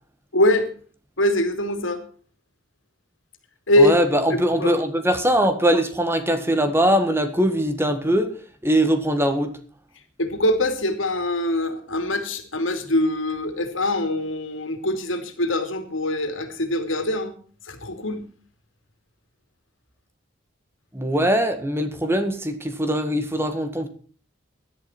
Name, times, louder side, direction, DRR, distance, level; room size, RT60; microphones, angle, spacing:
voice 1, 0.3-0.7 1.2-2.0 3.7-3.9 4.3-4.7 10.2-17.3 17.6-18.2, left 1 dB, 85° left, 8 dB, 2.7 m, -23 dB
voice 2, 3.8-8.3 8.6-9.6 20.9-23.9, equal, 10° right, 8 dB, 1.7 m, -21 dB
17.5 x 11.5 x 4.4 m, 0.42 s
head